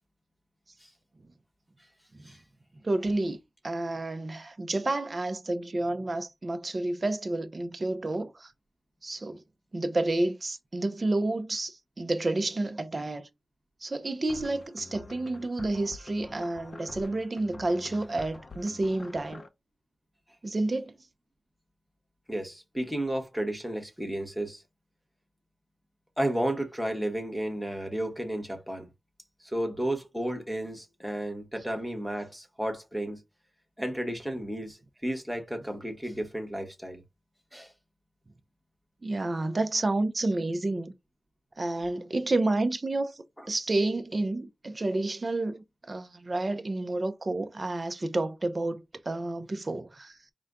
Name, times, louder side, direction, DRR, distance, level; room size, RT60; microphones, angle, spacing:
voice 1, 2.8-3.4 3.6-8.5 9.0-9.4 9.7-13.3 13.8-19.4 20.4-20.9 39.0-40.9 41.6-50.2, right 2 dB, 35° right, 0.6 m, -30 dB
sound 1, 14.3-19.5, left 3 dB, 45° left, 0.5 m, -47 dB
voice 2, 22.3-24.6 26.2-28.9 29.4-33.2 33.8-37.0 37.5-37.7 43.4-43.5, right 1 dB, ahead, 1.1 m, -33 dB
4.9 x 2.2 x 3.6 m
wide cardioid pair, 110°, 0 cm